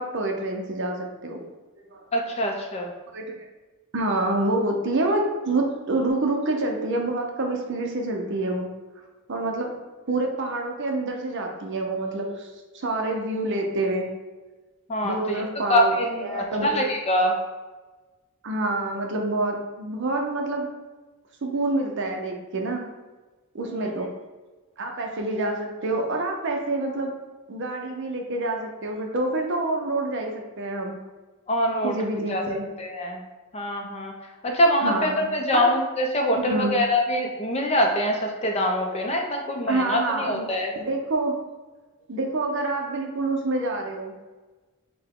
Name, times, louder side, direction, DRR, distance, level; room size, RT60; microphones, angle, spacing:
voice 1, 0.0-1.4 1.9-2.0 3.1-3.3 3.9-8.7 9.3-9.7 10.1-14.1 15.0-15.9 16.2-16.9 18.4-20.7 21.4-22.9 23.5-24.1 24.8-27.1 27.5-31.0 31.8-32.7 34.8-35.7 36.4-36.7 39.7-40.5 40.8-41.4 42.1-44.2, right 2 dB, 55° right, 2 dB, 0.6 m, -27 dB
voice 2, 2.1-2.9 14.9-15.4 15.7-17.4 23.7-23.9 31.5-32.0 32.3-32.4 32.8-33.2 33.5-34.1 34.4-40.7, equal, 30° left, 2 dB, 0.5 m, -24 dB
5.7 x 2.2 x 3.6 m, 1.2 s
head